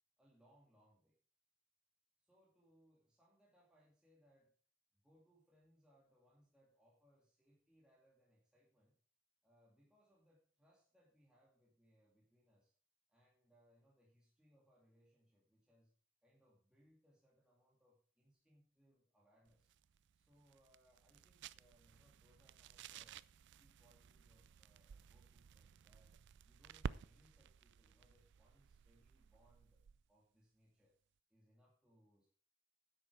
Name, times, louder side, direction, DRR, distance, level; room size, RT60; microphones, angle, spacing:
voice 1, 0.2-1.1 2.2-4.5 4.9-8.9 9.4-12.7 13.1-15.9 16.2-19.7 20.1-23.2 23.6-26.2 26.4-29.8 30.1-30.9 31.3-32.3, equal, 5° right, -5 dB, 2.3 m, -73 dB
sound 1, 19.5-30.1, right 6 dB, 60° right, 0.4 m, -54 dB
10.5 x 8.1 x 4.8 m, 0.42 s
head